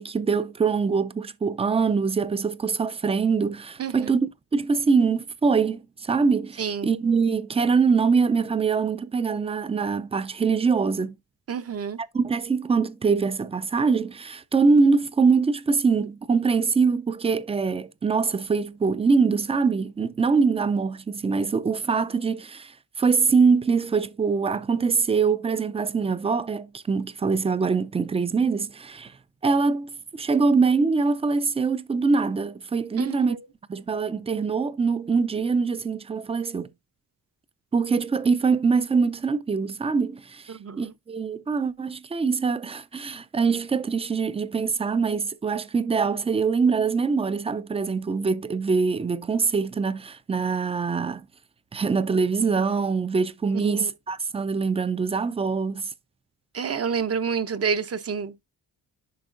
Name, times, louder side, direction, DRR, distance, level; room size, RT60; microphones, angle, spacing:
voice 1, 0.0-11.2 12.1-22.7 23.0-29.1 29.4-29.9 30.2-33.4 33.7-36.7 37.7-51.2 51.7-55.8, right 5 dB, 15° right, 0.4 m, -23 dB
voice 2, 3.8-4.1 6.6-6.9 11.5-12.0 33.0-33.4 40.5-40.9 53.5-53.9 56.5-58.3, right 6 dB, 40° right, 0.7 m, -29 dB
10.5 x 5.0 x 2.5 m
wide cardioid pair, 145°, 37 cm